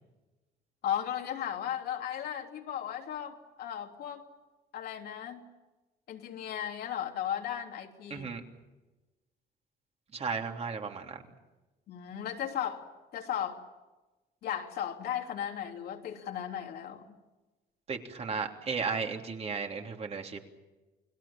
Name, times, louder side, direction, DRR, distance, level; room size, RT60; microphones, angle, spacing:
voice 1, 0.8-4.3 4.7-5.4 6.1-8.3 11.9-13.6 14.4-17.1, left 10 dB, 70° left, 3 dB, 3.3 m, -36 dB
voice 2, 8.1-8.4 10.1-11.2 17.9-20.4, right 5 dB, 40° right, 3 dB, 3.3 m, -34 dB
29.5 x 20.0 x 7.3 m, 1.1 s
cardioid pair, 110°, 17 cm